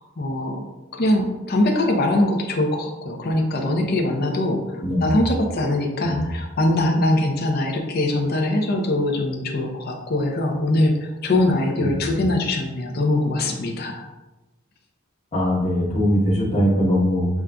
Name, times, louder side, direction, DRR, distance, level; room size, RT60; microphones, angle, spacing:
voice 1, 0.2-0.6 0.9-14.1, left 1 dB, 50° left, 2 dB, 0.6 m, -22 dB
voice 2, 4.8-5.2 6.0-6.2 11.8-11.9 15.3-17.3, equal, 30° left, -6 dB, 1.1 m, -21 dB
7.0 x 2.5 x 2.2 m, 1.1 s
head